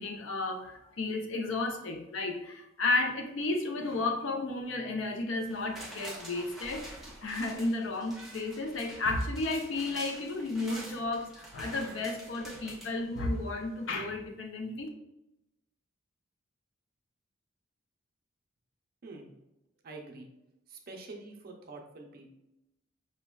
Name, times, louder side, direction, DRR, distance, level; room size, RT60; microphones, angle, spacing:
voice 1, 0.0-6.8 7.2-14.9, left 2 dB, 75° left, 3 dB, 0.6 m, -33 dB
sound 1, 5.4-13.6 14.0-14.1, right 1 dB, ahead, 0.6 m, -47 dB
voice 2, 19.8-20.3 20.7-22.3, right 3 dB, 50° right, 1 dB, 0.5 m, -46 dB
5.1 x 2.2 x 2.3 m, 0.90 s
head